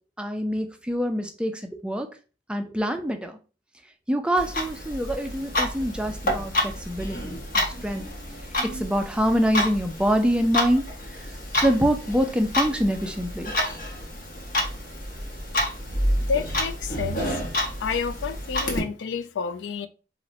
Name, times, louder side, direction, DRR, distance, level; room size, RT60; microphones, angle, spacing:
voice 1, 0.2-2.1 2.5-3.3 4.1-8.1 8.6-10.9 11.5-13.5, equal, 5° right, 0.3 m, -25 dB
Clock, 4.4-18.8, left 1 dB, 55° left, 0.8 m, -29 dB
voice 2, 16.3-17.2 17.8-19.9, left 5 dB, 90° left, 0.4 m, -29 dB
4.0 x 2.0 x 2.6 m
head